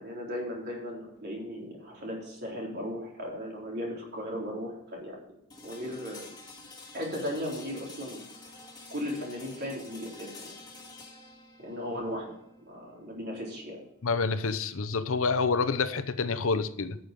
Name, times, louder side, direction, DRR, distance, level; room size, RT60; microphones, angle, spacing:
voice 1, 0.0-5.2 5.6-6.3 6.9-8.2 8.9-10.6 11.6-12.3 12.6-13.8, equal, 50° right, -2 dB, 4.0 m, -36 dB
sound 1, 5.5-15.4, left 3 dB, 20° left, 2.2 m, -49 dB
voice 2, 14.0-17.0, left 4 dB, 65° left, 11 dB, 0.7 m, -28 dB
12.5 x 6.7 x 5.4 m, 0.77 s
head